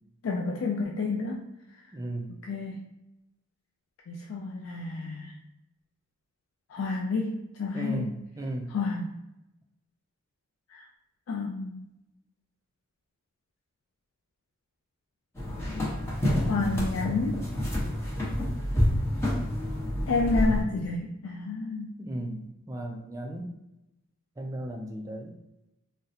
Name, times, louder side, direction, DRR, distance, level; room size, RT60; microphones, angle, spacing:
voice 1, 0.2-1.4 2.5-2.8 4.1-5.3 6.7-8.0 8.7-9.1 10.7-10.8 11.3-11.9 16.5-17.4 20.1-21.9, left 3 dB, 85° left, 0 dB, 0.4 m, -30 dB
voice 2, 1.9-2.4 7.7-8.7 22.0-23.5 24.4-25.3, right 1 dB, 15° right, 2 dB, 0.3 m, -35 dB
sound 1, 15.4-20.6, equal, 10° left, 0.9 m, -28 dB
3.8 x 2.1 x 2.7 m, 0.91 s
head